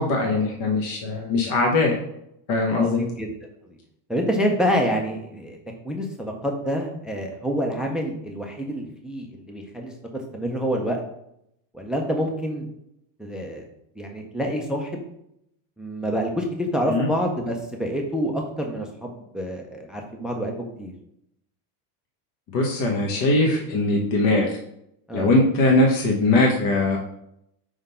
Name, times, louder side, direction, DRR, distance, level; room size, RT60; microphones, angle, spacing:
voice 1, 0.0-1.9 2.5-3.0 16.9-17.1 22.5-24.5 25.1-27.0, left 2 dB, 45° left, 0 dB, 1.1 m, -21 dB
voice 2, 2.7-3.3 4.1-5.6 5.8-9.9 10.3-11.0 11.7-12.7 13.2-13.7 14.0-15.0 15.8-20.5 20.8-20.9 25.1-25.3, equal, ahead, 2 dB, 0.4 m, -27 dB
4.8 x 3.7 x 5.5 m, 0.78 s
supercardioid pair, 140°, 46 cm